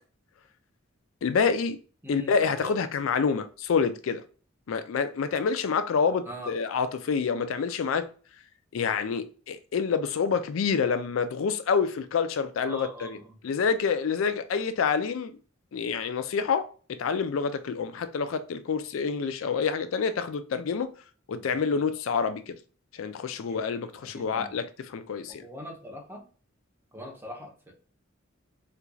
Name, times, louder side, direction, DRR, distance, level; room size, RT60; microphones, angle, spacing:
voice 1, 1.2-1.8 2.1-4.2 4.7-8.1 8.7-13.2 13.4-15.4 15.7-16.7 17.0-21.0 21.3-22.6 22.9-25.4, left 5 dB, 80° left, 0.4 m, -27 dB
voice 2, 2.0-2.8 6.3-6.5 12.7-13.4 21.3-21.8 23.5-23.6 24.1-24.5 25.3-26.3 26.9-27.7, equal, 10° right, 0.8 m, -42 dB
4.3 x 2.6 x 2.2 m
head